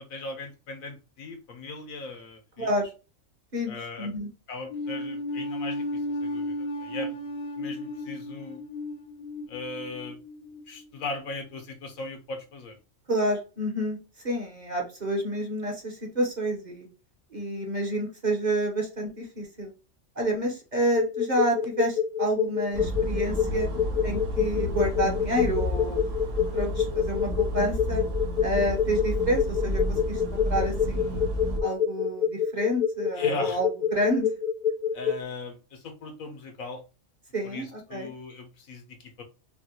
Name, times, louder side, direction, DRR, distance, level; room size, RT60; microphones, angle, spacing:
voice 1, 0.0-2.7 3.7-4.1 4.5-7.2 7.6-8.6 9.5-10.2 10.7-12.8 33.1-33.6 34.9-36.8 37.4-39.2, left 3 dB, 90° left, 4 dB, 1.4 m, -38 dB
voice 2, 3.5-4.3 13.1-16.9 17.3-19.7 20.2-23.7 24.0-26.0 26.5-28.0 28.4-31.3 31.6-34.3 37.3-38.1, right 1 dB, 35° right, 1 dB, 1.1 m, -29 dB
sound 1, 4.7-11.1, left 1 dB, 70° left, 1.0 m, -34 dB
sound 2, 20.9-35.1, left 8 dB, 50° left, 0.7 m, -26 dB
sound 3, 22.7-31.6, equal, 65° right, 1.2 m, -31 dB
5.8 x 2.4 x 2.9 m, 0.31 s
omnidirectional pair, 1.4 m